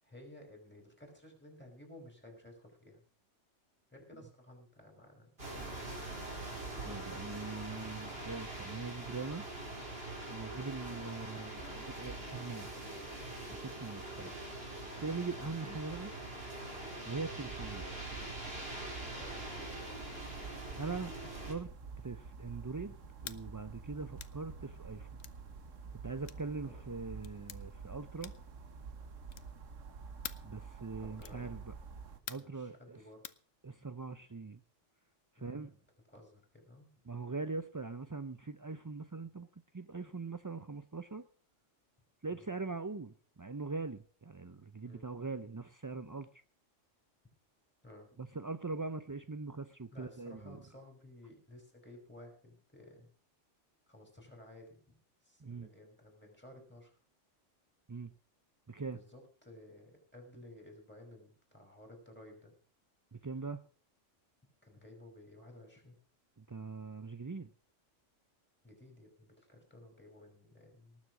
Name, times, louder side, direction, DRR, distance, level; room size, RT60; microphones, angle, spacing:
voice 1, 0.0-3.0 3.9-5.9 10.9-12.0 12.5-13.1 14.2-14.3 19.1-19.7 22.9-23.0 24.0-24.1 26.6-26.9 31.0-31.6 32.3-33.4 35.4-35.8 36.1-36.9 39.2-39.3 42.3-42.5 44.8-45.1 47.8-48.2 49.9-53.1 53.9-55.0 55.2-57.0 58.9-62.5 64.6-66.0 68.6-71.0, left 1 dB, 10° left, 2 dB, 5.7 m, -55 dB
sound 1, 5.4-21.5, right 2 dB, 50° right, 4.7 m, -43 dB
voice 2, 6.8-9.4 10.3-12.7 13.5-14.3 15.0-16.1 17.1-17.9 20.8-21.7 22.0-22.9 23.2-25.1 26.0-28.3 30.4-31.7 32.3-33.0 33.6-34.6 35.4-35.7 37.1-39.5 39.7-41.2 42.2-46.3 48.2-50.6 55.4-55.7 57.9-58.1 58.7-59.0 63.1-63.6 66.4-67.5, right 4 dB, 30° right, 11 dB, 0.3 m, -42 dB
sound 2, 17.5-32.2, right 5 dB, 85° right, 1.6 m, -49 dB
sound 3, 23.2-23.4 24.2-24.4 25.2-25.4 26.2-26.5 27.2-27.6 28.2-28.5 29.3-29.6 30.2-30.5 31.2-31.4 32.3-32.6 33.2-33.4, left 9 dB, 85° left, 1.2 m, -46 dB
19.0 x 7.3 x 6.1 m, 0.44 s
omnidirectional pair, 1.3 m